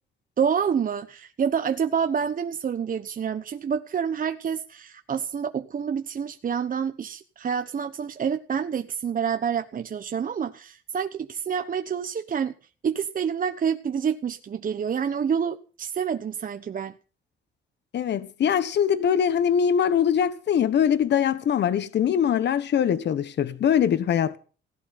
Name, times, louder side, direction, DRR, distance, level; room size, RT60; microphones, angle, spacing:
voice 1, 0.4-12.5 12.8-16.9, right 7 dB, 45° right, 1.1 m, -28 dB
voice 2, 17.9-24.4, left 8 dB, 60° left, 1.3 m, -22 dB
17.0 x 11.5 x 5.9 m
cardioid pair, 90°, 20 cm